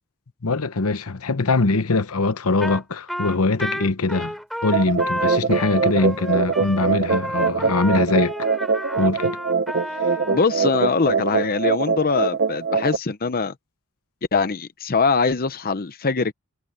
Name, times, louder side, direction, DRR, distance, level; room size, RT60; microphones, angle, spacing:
voice 1, 0.4-4.3 4.6-8.5 9.0-9.4, left 3 dB, 75° left, 1.0 m, -22 dB
Trumpet, 2.6-2.8 3.1-10.5, equal, ahead, 5.8 m, -31 dB
sound 1, 4.7-13.0, right 5 dB, 50° right, 0.7 m, -23 dB
voice 2, 10.3-13.5 14.3-16.3, left 4 dB, 40° left, 0.8 m, -22 dB
head